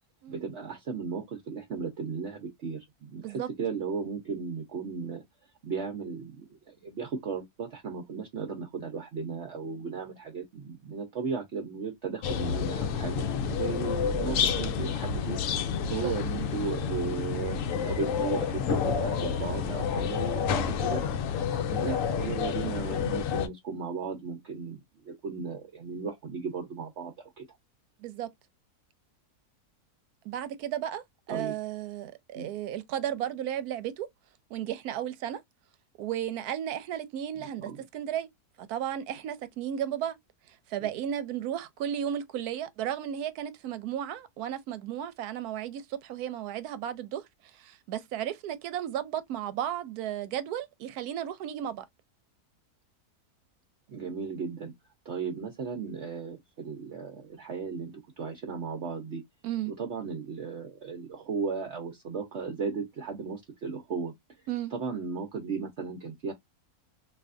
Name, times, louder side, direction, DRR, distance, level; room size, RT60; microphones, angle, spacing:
voice 1, 0.3-5.2 5.6-15.4 15.9-21.0 21.7-27.4 31.3-31.5 32.3-32.5 37.4-37.8 40.8-40.9 53.9-54.7 55.0-59.2 59.8-64.2 64.7-66.3, right 5 dB, 55° right, 0.9 m, -36 dB
sound 1, 12.2-23.5, left 7 dB, 70° left, 0.8 m, -29 dB
voice 2, 30.2-31.0 31.3-34.1 34.5-35.4 36.0-38.3 38.6-40.2 40.5-47.2 47.5-51.8 59.4-59.7 64.5-64.7, right 10 dB, 80° right, 1.1 m, -34 dB
3.2 x 2.7 x 2.4 m
omnidirectional pair, 1.6 m